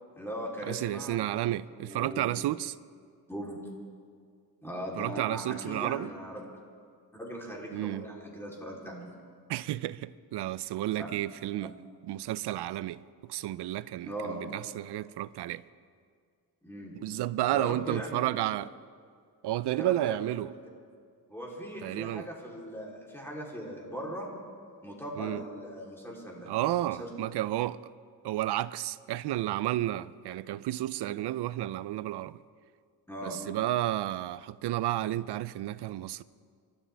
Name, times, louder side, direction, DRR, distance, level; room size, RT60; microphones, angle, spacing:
voice 1, 0.1-1.2 1.7-2.3 3.3-3.6 4.6-6.4 7.1-9.0 11.0-11.1 11.6-11.7 14.0-14.4 16.6-16.9 17.5-18.2 19.7-20.3 21.3-24.3 24.8-26.5 26.8-27.1 33.1-33.4, equal, 5° left, 3.4 m, -39 dB
voice 2, 0.7-2.8 5.0-6.1 7.7-8.1 9.5-11.7 12.0-15.6 17.0-18.7 19.4-20.5 21.8-22.3 25.2-25.4 26.5-27.8 28.2-32.4 33.2-36.2, right 14 dB, 80° right, 0.5 m, -32 dB
28.5 x 12.5 x 3.4 m
cardioid pair, 125°, 39 cm